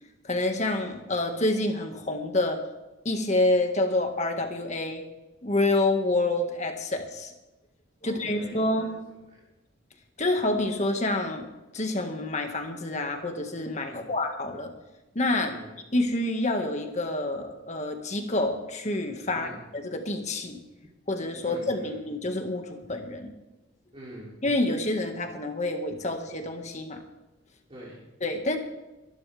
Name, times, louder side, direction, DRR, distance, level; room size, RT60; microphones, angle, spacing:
voice 1, 0.2-2.6 3.1-5.0 5.4-7.3 8.0-8.9 10.2-11.5 11.7-14.7 15.2-15.6 15.9-20.6 21.1-23.3 24.4-27.0 28.2-28.6, left 2 dB, 35° left, 4 dB, 1.8 m, -27 dB
voice 2, 8.0-9.4 13.9-14.1 15.4-15.8 19.3-19.6 21.4-22.0 23.9-24.4 27.7-28.1, equal, 30° right, -5 dB, 3.1 m, -45 dB
24.5 x 11.5 x 3.5 m, 1.0 s
head